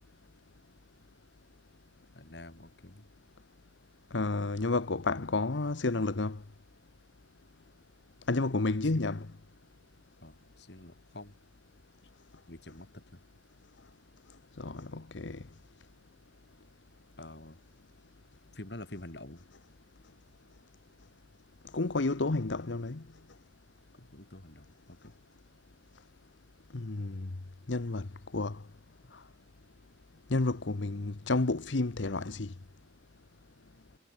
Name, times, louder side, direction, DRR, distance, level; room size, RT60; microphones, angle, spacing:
voice 1, 2.1-3.1 8.9-9.3 10.2-11.4 12.5-13.2 17.2-17.6 18.5-19.5 23.9-25.1, left 1 dB, 65° left, 3.2 m, -48 dB
voice 2, 4.1-6.4 8.3-9.2 14.6-15.4 21.7-23.0 26.7-27.3 27.7-28.1 28.3-28.6 30.3-32.5, left 3 dB, 80° left, 1.0 m, -30 dB
head